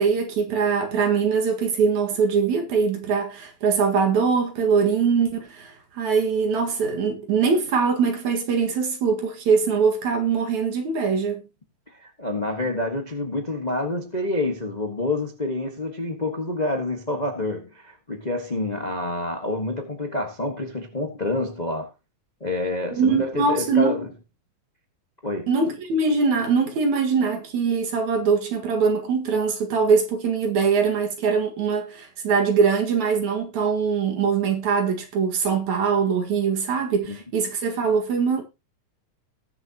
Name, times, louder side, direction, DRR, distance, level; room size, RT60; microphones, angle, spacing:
voice 1, 0.0-11.4 22.9-24.0 25.5-38.4, right 5 dB, 65° right, 3.1 m, -22 dB
voice 2, 11.9-21.9 22.4-24.1 25.2-25.5 37.1-37.2, left 2 dB, 30° left, 0.7 m, -28 dB
20.0 x 7.1 x 2.9 m
omnidirectional pair, 3.6 m